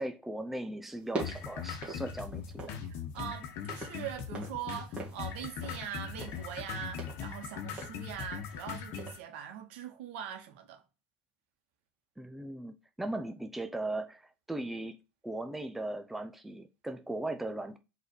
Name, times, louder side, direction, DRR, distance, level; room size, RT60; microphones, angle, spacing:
voice 1, 0.0-2.7 12.2-15.0 15.2-17.8, right 1 dB, 5° right, 0.5 m, -38 dB
sound 1, 0.9-2.9 3.1-8.7 9.0-9.2, right 3 dB, 20° right, 2.3 m, -43 dB
sound 2, 1.2-9.2, left 8 dB, 50° left, 1.3 m, -40 dB
voice 2, 2.8-10.8, right 9 dB, 80° right, 1.9 m, -42 dB
5.2 x 4.0 x 4.7 m
cardioid pair, 160°, 6 cm